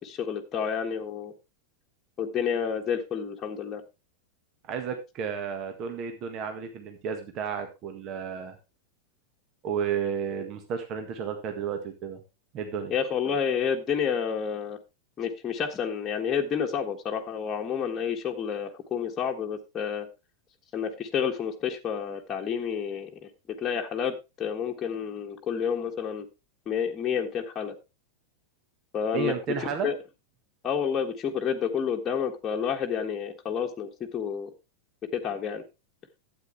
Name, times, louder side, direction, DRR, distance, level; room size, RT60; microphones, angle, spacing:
voice 1, 0.0-1.3 2.2-3.8 12.9-14.8 15.2-20.1 20.7-23.3 23.6-26.3 26.7-27.7 28.9-29.3 29.6-30.0 30.6-34.5 35.1-35.6, left 7 dB, 25° left, 1 dB, 1.5 m, -29 dB
voice 2, 4.7-8.5 9.6-12.2 12.5-12.9 29.1-29.9, right 7 dB, 35° right, 7 dB, 1.6 m, -32 dB
12.5 x 8.6 x 3.4 m, 0.26 s
figure-of-eight pair, 90°, 0 cm